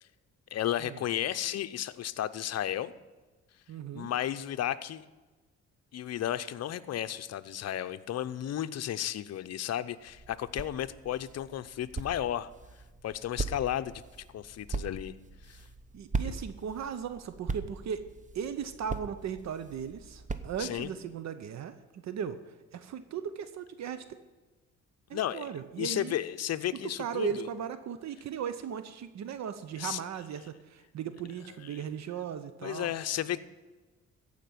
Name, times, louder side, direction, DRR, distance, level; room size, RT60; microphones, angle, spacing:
voice 1, 0.5-2.9 3.9-5.0 5.9-12.5 13.0-14.0 14.3-15.1 15.4-15.6 16.2-16.4 20.6-20.9 25.1-25.5 25.8-27.5 29.8-30.0 31.7-31.9 32.6-33.4, left 11 dB, 55° left, 12 dB, 0.7 m, -33 dB
voice 2, 3.7-4.1 15.9-18.1 18.3-22.4 22.7-24.0 25.1-26.2 27.0-32.9, right 7 dB, 65° right, 11 dB, 0.8 m, -37 dB
sound 1, 10.0-20.9, right 4 dB, 25° right, 0.8 m, -40 dB
15.0 x 5.2 x 9.3 m, 1.2 s
cardioid pair, 90°, 30 cm